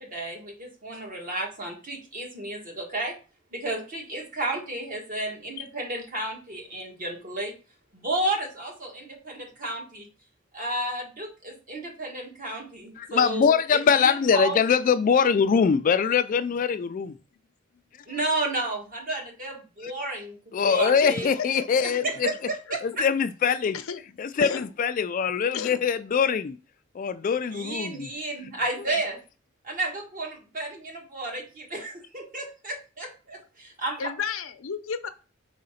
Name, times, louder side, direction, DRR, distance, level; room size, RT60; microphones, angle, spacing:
voice 1, 0.0-3.2 3.5-7.5 7.9-10.1 10.5-14.6 18.1-21.3 21.8-23.0 27.5-29.2 29.6-34.1, right 2 dB, 40° right, 1.6 m, -32 dB
voice 2, 13.0-17.1 20.5-22.3 22.8-23.8 24.2-26.6 27.0-28.1, left 6 dB, 40° left, 0.3 m, -23 dB
voice 3, 24.4-24.7 25.5-25.8 28.2-28.3 34.0-35.1, left 6 dB, 80° left, 0.6 m, -32 dB
4.9 x 3.8 x 5.6 m
head